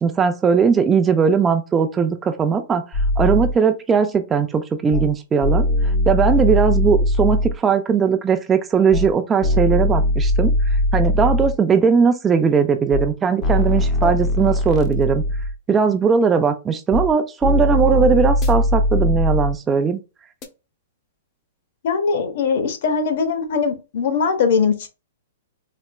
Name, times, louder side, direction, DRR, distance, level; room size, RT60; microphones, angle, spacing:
voice 1, 0.0-2.8 3.2-10.5 10.9-15.2 15.7-20.0, right 6 dB, 15° right, 0.3 m, -19 dB
sound 1, 2.9-3.5 4.9-5.1 5.4-7.5 8.9-9.1 9.4-11.5 12.9-13.1 13.4-15.5 16.9-17.1 17.4-19.5 20.4-20.5, left 1 dB, 30° left, 0.7 m, -20 dB
voice 2, 21.8-24.9, left 5 dB, 60° left, 0.8 m, -21 dB
4.1 x 2.0 x 2.2 m
hypercardioid pair, 140°, 0 cm